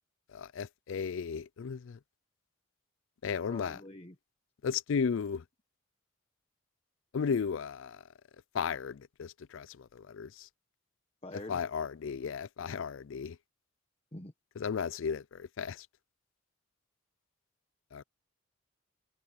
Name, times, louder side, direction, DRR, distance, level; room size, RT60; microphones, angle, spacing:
voice 1, 0.3-2.0 3.2-3.8 4.6-5.4 7.1-8.0 8.5-10.5 11.5-13.4 14.6-15.9 17.9-18.0, left 6 dB, 65° left, 0.4 m, -35 dB
voice 2, 3.5-4.1 11.2-11.6 14.1-14.3, left 1 dB, 30° left, 1.3 m, -45 dB
head